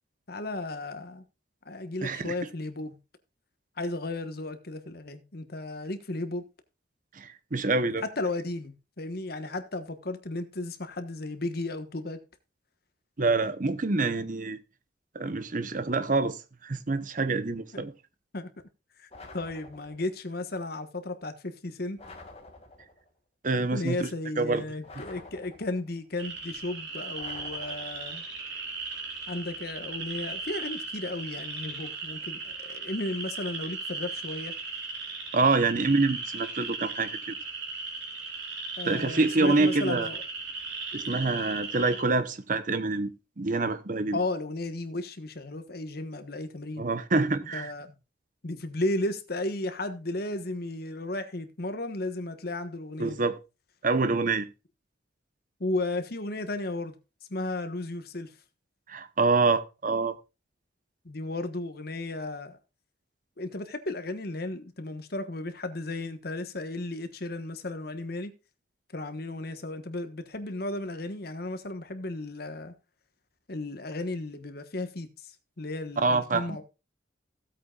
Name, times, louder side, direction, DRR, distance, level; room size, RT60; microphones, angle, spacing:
voice 1, 0.3-1.2 1.6-2.9 3.8-6.4 8.2-12.2 18.3-18.5 19.0-22.0 23.6-28.2 29.3-34.5 38.8-40.2 44.1-46.9 47.5-47.9 48.4-53.2 55.6-57.0 57.3-58.3 61.0-62.6 63.4-68.3 68.9-72.7 73.5-76.6, left 2 dB, 55° left, 1.3 m, -34 dB
voice 2, 2.0-2.3 7.1-8.0 13.2-14.6 15.1-17.9 23.4-24.1 24.4-24.6 35.3-37.3 38.9-40.1 40.9-43.1 43.4-44.2 46.8-47.7 53.0-53.4 53.8-54.5 58.9-60.1 76.0-76.6, right 3 dB, 45° right, 0.8 m, -26 dB
sound 1, 19.1-20.2 22.0-23.1 24.8-26.0 27.2-28.3, left 3 dB, 35° left, 2.1 m, -48 dB
sound 2, 26.2-42.0, right 4 dB, 65° right, 3.8 m, -37 dB
16.0 x 8.3 x 2.4 m
head